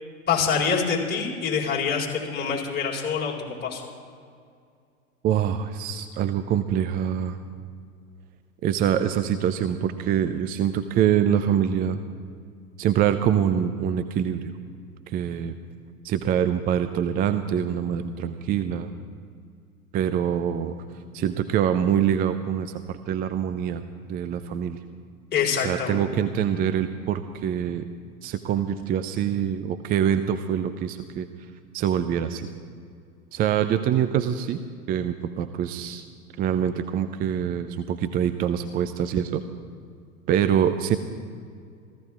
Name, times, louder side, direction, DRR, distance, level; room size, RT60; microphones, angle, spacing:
voice 1, 0.3-3.8 25.3-26.0 26.4-26.6, left 6 dB, 20° left, -2 dB, 4.4 m, -26 dB
voice 2, 5.2-7.4 8.6-12.0 12.8-14.5 15.1-15.5 16.0-18.9 19.9-20.7 21.1-23.8 24.1-24.8 25.6-27.9 28.2-31.3 31.7-32.5 33.3-34.6 34.9-36.0 36.4-39.4 40.3-41.0, right 9 dB, 20° right, 10 dB, 0.5 m, -25 dB
28.5 x 14.5 x 2.5 m, 2.2 s
figure-of-eight pair, 90°, 44 cm